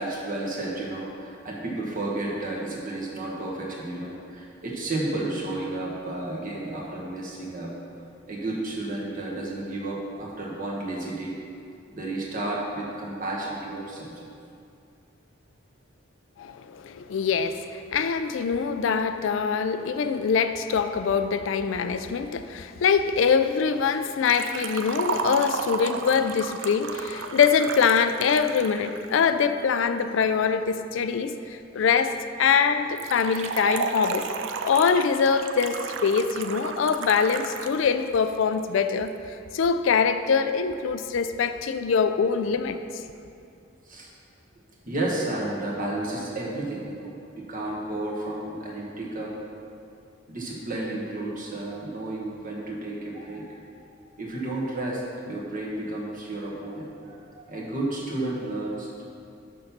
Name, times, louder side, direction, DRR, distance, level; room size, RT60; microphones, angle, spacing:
voice 1, 0.0-7.7 8.3-11.4 11.9-14.3 43.9-44.1 44.8-49.3 50.3-53.6 54.2-59.0, right 2 dB, 40° right, -3 dB, 1.4 m, -32 dB
voice 2, 16.4-34.3 34.6-39.1 39.5-42.8, left 6 dB, 65° left, 9 dB, 0.4 m, -24 dB
Liquid, 24.2-29.2 33.0-37.8 38.1-38.2 39.1-39.2, right 5 dB, 65° right, 0.4 m, -33 dB
6.4 x 5.5 x 5.9 m, 2.5 s
head